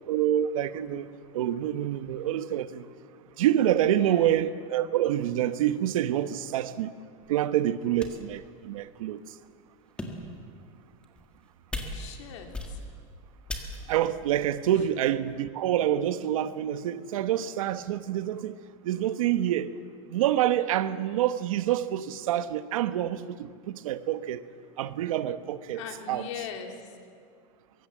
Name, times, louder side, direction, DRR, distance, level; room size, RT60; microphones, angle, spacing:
voice 1, 0.1-1.1 1.3-2.9 3.4-6.9 7.3-9.2 13.9-18.5 18.8-19.7 20.1-24.4 24.8-25.8 26.1-26.3, right 11 dB, 75° right, 1.1 m, -27 dB
voice 2, 4.0-4.3 11.9-12.8 14.7-14.8 25.7-27.0, left 7 dB, 55° left, 3.1 m, -41 dB
sound 1, 7.3-7.4 8.0-8.4 9.0-9.1 9.8-10.4 11.0-11.4 11.7-12.2 12.5-13.0 13.5-14.0, left 1 dB, 5° left, 1.7 m, -37 dB
24.0 x 23.0 x 7.4 m
supercardioid pair, 180°, 18 cm